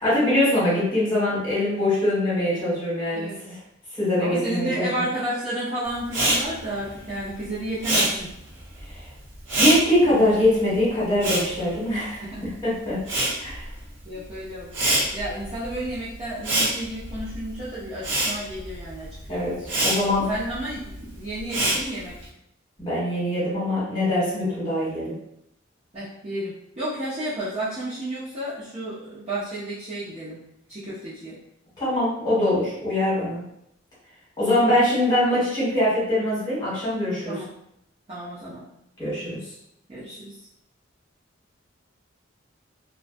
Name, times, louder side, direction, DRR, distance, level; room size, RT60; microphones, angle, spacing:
voice 1, 0.0-3.6 4.0-5.0 8.9-9.0 9.6-12.2 12.6-13.0 13.4-13.6 19.3-20.3 22.8-25.2 31.8-33.4 34.4-37.4 39.0-39.5, left 1 dB, 20° left, -9 dB, 1.4 m, -23 dB
voice 2, 4.2-8.3 12.2-12.4 13.2-13.3 14.1-14.8 15.1-19.6 20.3-22.2 25.9-30.4 30.7-31.4 34.6-34.8 37.3-37.5 38.1-38.6 39.9-40.4, right 1 dB, 35° right, -11 dB, 0.6 m, -32 dB
Respiratory sounds, 6.1-12.5 12.8-22.3, right 1 dB, 65° right, 0.8 m, -27 dB
2.4 x 2.2 x 2.5 m, 0.77 s
head